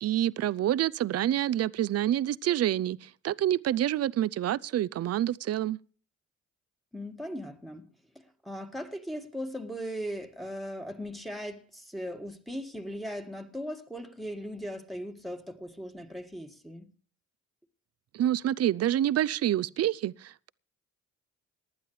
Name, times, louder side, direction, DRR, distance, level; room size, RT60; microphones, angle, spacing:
voice 1, 0.0-5.8 18.1-20.5, right 12 dB, 55° right, 0.5 m, -27 dB
voice 2, 6.9-7.9 8.4-16.9, equal, ahead, 1.9 m, -38 dB
19.0 x 11.5 x 3.2 m
cardioid pair, 90°, 30 cm